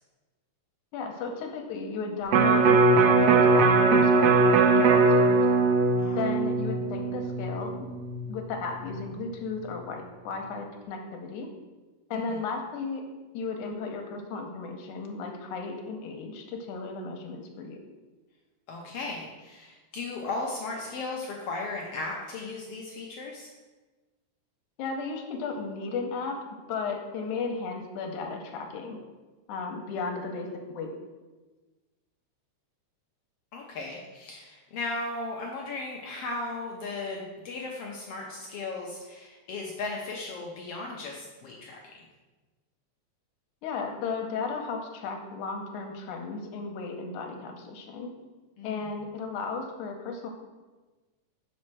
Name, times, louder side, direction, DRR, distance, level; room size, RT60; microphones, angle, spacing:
voice 1, 0.9-5.5 6.2-7.7 8.3-11.5 12.1-13.0 13.3-17.8 24.8-26.4 26.7-29.0 29.5-30.5 30.7-30.9 43.6-48.1 48.6-50.3, left 4 dB, 90° left, 3 dB, 2.2 m, -35 dB
Electric guitar, 2.3-8.5 8.9-9.0, right 3 dB, 75° right, 1.5 m, -21 dB
voice 2, 18.7-23.5 33.5-41.8 48.6-48.8, left 3 dB, 70° left, -1 dB, 1.4 m, -36 dB
6.3 x 4.3 x 6.0 m, 1.2 s
omnidirectional pair, 3.4 m